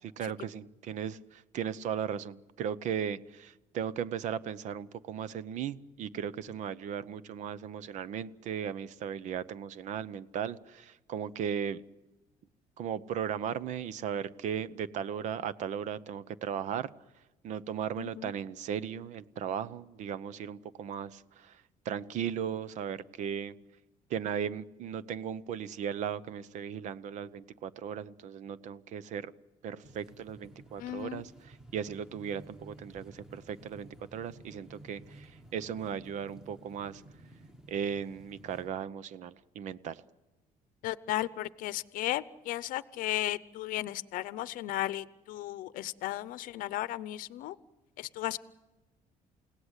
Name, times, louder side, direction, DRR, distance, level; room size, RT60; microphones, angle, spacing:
voice 1, 0.2-11.8 12.8-16.9 17.4-23.6 24.1-29.3 29.6-37.0 37.7-40.0, right 8 dB, 55° right, 17 dB, 0.8 m, -37 dB
voice 2, 18.0-18.3 30.8-31.2 40.8-47.6 48.0-48.4, left 15 dB, 70° left, 16 dB, 0.7 m, -35 dB
sound 1, 29.8-38.7, right 1 dB, 5° right, 1.4 m, -54 dB
29.5 x 17.5 x 8.2 m, 1.1 s
cardioid pair, 175°, 14 cm